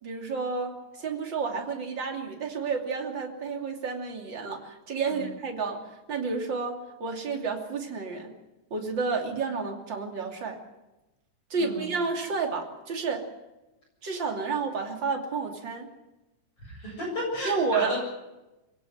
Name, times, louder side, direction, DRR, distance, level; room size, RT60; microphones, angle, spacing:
voice 1, 0.0-5.8 6.1-8.3 8.7-10.6 11.5-13.3 14.0-15.9 17.4-18.0, right 4 dB, 30° right, 3 dB, 2.8 m, -30 dB
voice 2, 11.5-11.9 16.6-18.0, left 1 dB, 30° left, 0 dB, 8.1 m, -34 dB
25.0 x 17.5 x 7.9 m, 1.0 s
omnidirectional pair, 4.9 m